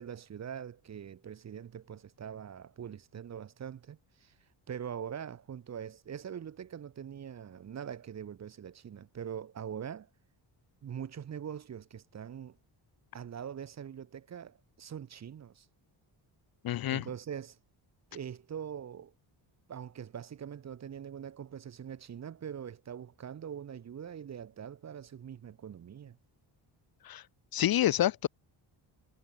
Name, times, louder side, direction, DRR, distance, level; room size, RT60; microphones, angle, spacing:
voice 1, 0.0-4.3 4.7-10.1 10.8-12.6 13.1-15.7 16.9-17.6 18.1-19.1 19.7-26.2, right 8 dB, 35° right, 0.7 m, -43 dB
voice 2, 16.6-17.0 27.0-27.2 27.5-28.3, left 12 dB, 50° left, 0.6 m, -28 dB
wide cardioid pair, 155°, 46 cm